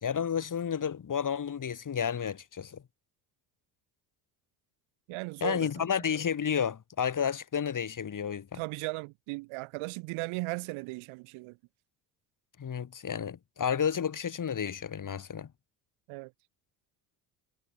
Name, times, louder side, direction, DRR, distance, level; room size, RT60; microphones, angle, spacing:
voice 1, 0.0-2.8 5.4-8.6 12.6-15.5, left 7 dB, 40° left, 3.0 m, -31 dB
voice 2, 5.1-5.7 8.5-11.6 16.1-16.3, right 25 dB, 70° right, 2.3 m, -37 dB
hypercardioid pair, 60°, 50 cm